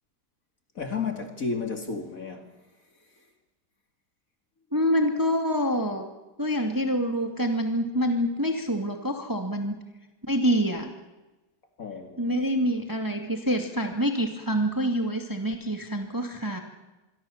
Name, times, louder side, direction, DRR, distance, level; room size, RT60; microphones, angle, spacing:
voice 1, 0.7-2.5 11.8-12.5, left 5 dB, 40° left, 2.7 m, -32 dB
voice 2, 4.7-6.1 6.4-9.8 10.3-10.9 12.2-16.6, equal, 10° right, 2.0 m, -26 dB
26.5 x 22.0 x 7.2 m
omnidirectional pair, 2.3 m